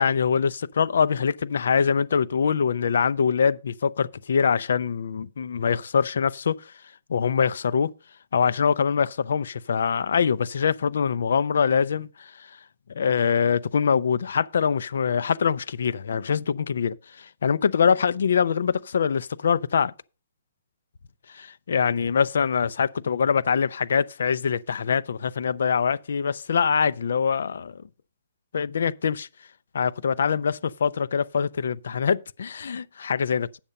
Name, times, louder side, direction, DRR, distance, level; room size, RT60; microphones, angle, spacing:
voice 1, 0.0-6.7 7.1-7.9 8.3-12.6 12.9-19.9 21.3-27.8 28.5-29.3 29.7-33.5, left 6 dB, 65° left, 0.4 m, -24 dB
8.6 x 6.8 x 5.2 m
hypercardioid pair, 175°, 0 cm